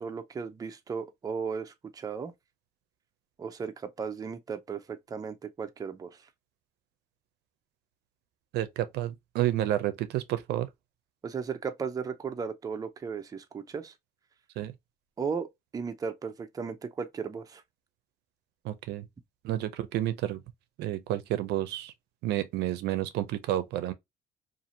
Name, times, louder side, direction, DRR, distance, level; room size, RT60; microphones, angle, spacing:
voice 1, 0.0-2.3 3.4-6.2 11.2-13.9 15.2-15.5 15.7-17.6, right 5 dB, 20° right, 0.4 m, -35 dB
voice 2, 8.5-10.7 14.6-14.7 18.6-19.0 19.4-20.4 20.8-21.9 22.2-23.9, right 13 dB, 80° right, 0.5 m, -30 dB
2.7 x 2.5 x 2.5 m
cardioid pair, 110°, 17 cm